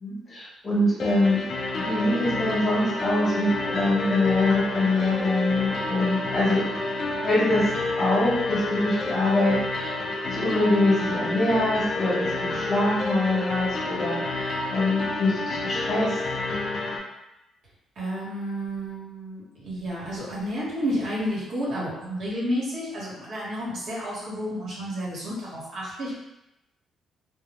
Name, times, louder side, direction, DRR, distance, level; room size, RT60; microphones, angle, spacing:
voice 1, 0.0-1.4 1.7-6.7 7.2-7.7 8.0-10.0 10.3-16.2, left 2 dB, 25° left, -8 dB, 0.8 m, -24 dB
sound 1, 1.0-17.0, left 2 dB, 55° left, 0.4 m, -29 dB
voice 2, 18.0-26.2, equal, 70° right, -6 dB, 1.1 m, -31 dB
2.1 x 2.0 x 2.9 m, 0.90 s
cardioid pair, 90°, 0 cm